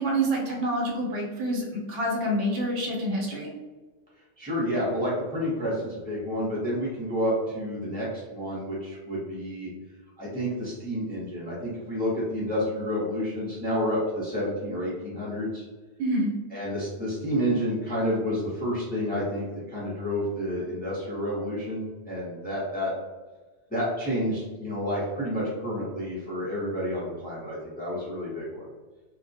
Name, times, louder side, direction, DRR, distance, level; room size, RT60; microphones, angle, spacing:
voice 1, 0.0-3.5 16.0-16.3, right 1 dB, 80° right, -2 dB, 1.0 m, -27 dB
voice 2, 4.4-8.1 8.3-9.7 10.2-15.6 16.5-22.9 23.7-28.6, equal, 10° left, -7 dB, 0.5 m, -29 dB
2.3 x 2.1 x 2.6 m, 1.3 s
omnidirectional pair, 1.3 m